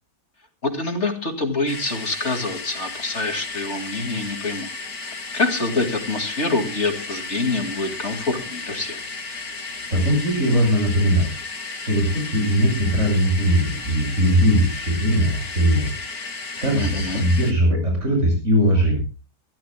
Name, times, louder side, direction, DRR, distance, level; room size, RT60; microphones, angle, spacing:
voice 1, 0.6-4.7 5.0-9.0 16.7-17.2, left 3 dB, 45° left, 5 dB, 2.5 m, -26 dB
sound 1, 1.7-17.5, left 3 dB, 60° left, 2.6 m, -34 dB
voice 2, 9.9-11.3 11.9-15.9 16.6-19.0, equal, 45° right, 1 dB, 6.5 m, -19 dB
23.5 x 16.0 x 2.2 m, 0.33 s
omnidirectional pair, 1.8 m